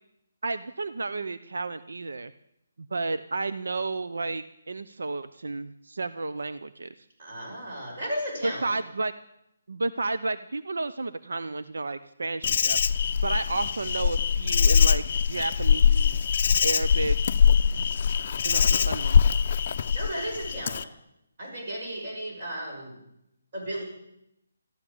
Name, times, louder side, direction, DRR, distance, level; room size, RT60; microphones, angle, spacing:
voice 1, 0.4-2.3 2.9-6.9 8.4-9.1 9.7-16.2 16.6-17.2 18.4-19.3, right 3 dB, 90° right, 12 dB, 0.7 m, -32 dB
voice 2, 7.2-8.7 19.9-20.9 21.4-23.0 23.5-23.8, equal, 40° right, -1 dB, 6.2 m, -34 dB
Insect, 12.4-20.8, left 6 dB, 35° left, 0.5 m, -23 dB
13.0 x 12.0 x 8.6 m, 0.81 s
hypercardioid pair, 175°, 0 cm